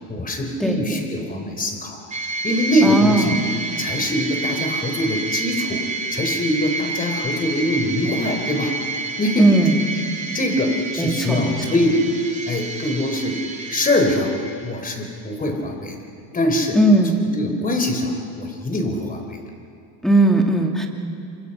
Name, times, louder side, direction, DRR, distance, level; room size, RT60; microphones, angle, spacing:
voice 1, 0.1-2.0 2.4-3.4 3.8-5.8 6.1-8.7 9.2-9.5 10.3-12.0 12.5-13.4 13.7-14.3 14.6-16.0 16.3-16.8 17.3-19.4, left 1 dB, 20° left, 4 dB, 4.2 m, -23 dB
voice 2, 0.6-1.0 2.8-3.4 9.4-9.8 11.0-11.5 16.7-17.2 20.0-20.9, right 2 dB, ahead, 1 dB, 2.5 m, -17 dB
sound 1, 2.1-14.9, right 3 dB, 20° right, 3.1 m, -29 dB
27.5 x 26.0 x 5.7 m, 2.5 s
supercardioid pair, 115°, 41 cm